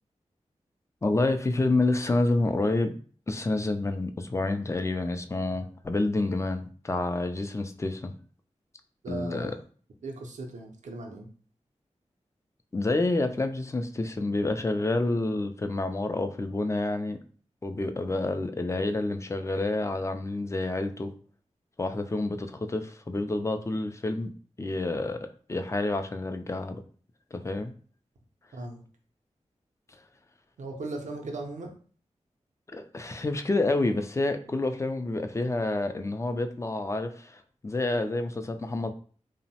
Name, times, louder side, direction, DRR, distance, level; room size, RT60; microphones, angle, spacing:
voice 1, 1.0-2.9 3.3-8.1 9.1-9.5 12.7-17.2 17.6-21.1 21.8-24.3 24.6-25.2 25.5-26.8 27.3-27.7 32.7-38.9, left 2 dB, 25° left, 7 dB, 0.3 m, -28 dB
voice 2, 9.0-9.6 10.0-11.3 28.5-28.8 30.6-31.7, right 2 dB, 85° right, 2 dB, 0.5 m, -38 dB
2.9 x 2.0 x 2.8 m, 0.43 s
cardioid pair, 50°, 12 cm